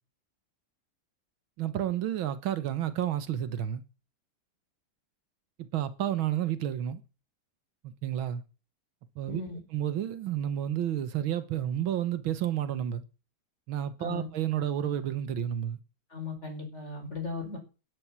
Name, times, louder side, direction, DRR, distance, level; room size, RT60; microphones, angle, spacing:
voice 1, 1.6-3.8 5.7-7.0 7.8-8.4 9.2-9.4 9.7-13.0 13.7-15.8, right 11 dB, 90° right, 2.0 m, -30 dB
voice 2, 9.3-9.6 14.0-14.3 16.1-17.6, left 4 dB, 35° left, 5.5 m, -37 dB
11.5 x 11.0 x 6.1 m
omnidirectional pair, 2.2 m